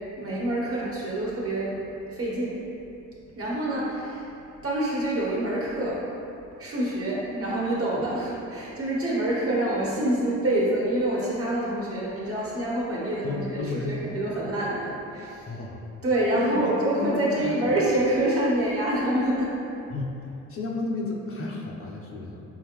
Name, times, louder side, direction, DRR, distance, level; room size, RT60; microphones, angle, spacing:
voice 1, 0.2-1.8 2.1-2.6 3.4-4.3 4.6-6.0 6.6-15.5 16.0-19.5, right 1 dB, 50° right, -6 dB, 1.3 m, -26 dB
voice 2, 13.2-14.3 15.5-15.8 16.3-16.6 16.9-17.6 19.9-22.4, left 3 dB, 45° left, -2 dB, 0.7 m, -32 dB
4.2 x 3.8 x 3.0 m, 2.8 s
cardioid pair, 90°, 30 cm